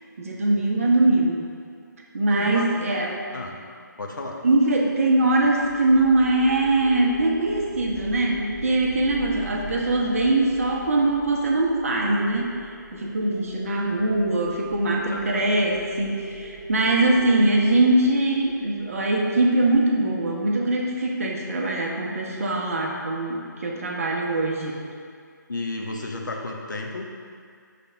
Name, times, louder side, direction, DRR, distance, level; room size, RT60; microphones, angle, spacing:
voice 1, 0.2-1.5 2.1-3.2 4.4-12.7 12.9-24.8, right 2 dB, 45° right, -1 dB, 0.9 m, -22 dB
voice 2, 4.0-4.4 15.0-15.6 25.5-27.1, left 2 dB, 70° left, 0 dB, 1.0 m, -33 dB
sound 1, 4.7-19.9, left 1 dB, 25° left, 1.1 m, -40 dB
6.2 x 3.4 x 5.5 m, 2.2 s
figure-of-eight pair, 145°, 11 cm